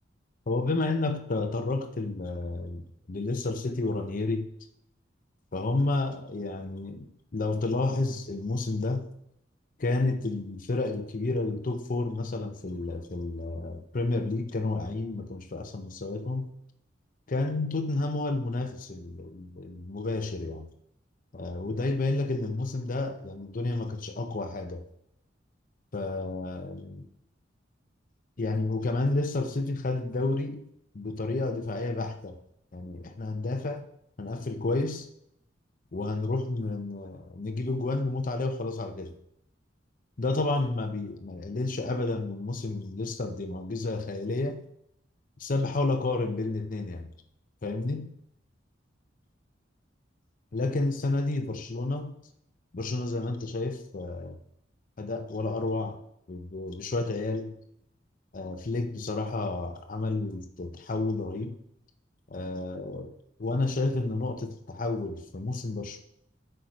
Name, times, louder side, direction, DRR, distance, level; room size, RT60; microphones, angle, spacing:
voice 1, 0.5-4.5 5.5-7.1 7.3-9.1 9.8-16.5 17.3-20.7 21.3-24.8 25.9-27.1 28.4-30.7 30.9-32.4 32.7-33.9 34.2-35.1 35.9-39.1 40.2-44.6 45.4-47.1 47.6-48.1 50.5-52.1 52.7-54.4 55.0-56.0 56.3-57.6 58.3-61.5 62.3-63.1 63.4-66.0, left 2 dB, 45° left, 0.6 m, -30 dB
7.9 x 4.6 x 5.1 m
head